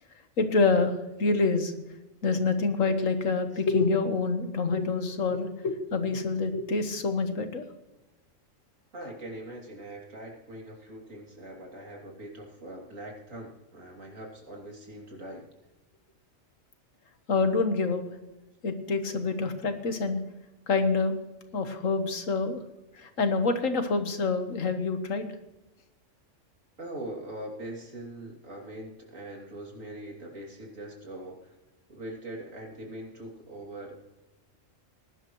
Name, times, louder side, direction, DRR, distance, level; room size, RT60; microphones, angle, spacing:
voice 1, 0.4-1.7 2.2-7.7 17.3-18.0 18.6-20.2 20.7-21.1 21.5-22.6 23.0-25.3, left 4 dB, 85° left, 8 dB, 1.7 m, -26 dB
voice 2, 8.9-15.5 26.8-31.6 31.9-34.0, right 1 dB, 85° right, -1 dB, 3.3 m, -42 dB
20.0 x 11.0 x 3.1 m, 1.0 s
omnidirectional pair, 1.3 m